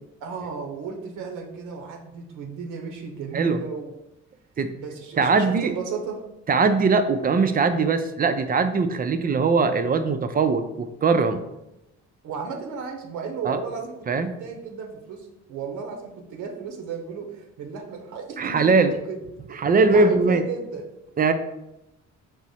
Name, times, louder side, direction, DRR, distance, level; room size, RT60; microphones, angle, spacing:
voice 1, 0.2-3.9 4.8-6.2 12.2-19.2 19.5-20.9, right 5 dB, 85° right, 2 dB, 0.7 m, -34 dB
voice 2, 5.2-5.7 6.5-11.4 13.4-13.6 14.1-14.4 18.4-18.9 19.6-20.4 21.2-21.3, right 4 dB, 30° right, 9 dB, 0.4 m, -21 dB
4.7 x 2.0 x 4.1 m, 0.89 s
cardioid pair, 90°, 30 cm